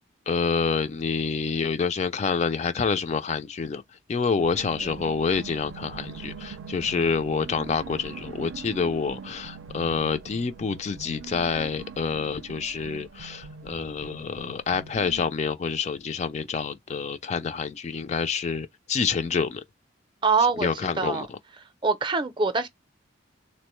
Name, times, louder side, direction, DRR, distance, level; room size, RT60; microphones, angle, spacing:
voice 1, 0.3-3.8 4.1-19.6 20.6-21.3, left 5 dB, 35° left, 0.3 m, -27 dB
sound 1, 4.4-15.3, right 5 dB, 80° right, 0.4 m, -42 dB
voice 2, 4.8-5.2 20.2-21.3 21.8-22.7, right 4 dB, 25° right, 0.5 m, -25 dB
3.6 x 2.1 x 3.0 m
head